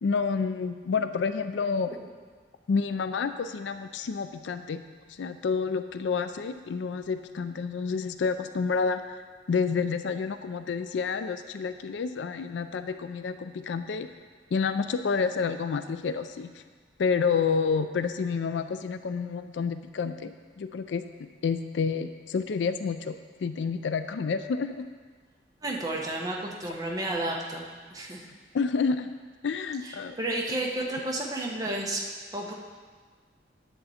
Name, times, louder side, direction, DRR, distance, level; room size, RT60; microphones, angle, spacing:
voice 1, 0.0-1.9 2.7-4.8 5.1-9.2 9.5-14.1 14.5-16.6 17.0-20.3 20.6-21.0 21.4-23.2 23.4-24.8 28.5-29.1 29.4-30.2, left 5 dB, 75° left, 10 dB, 0.4 m, -29 dB
voice 2, 25.6-28.3 29.8-32.1 32.3-32.5, right 1 dB, 20° right, -1 dB, 1.1 m, -32 dB
10.0 x 6.8 x 4.3 m, 1.5 s
head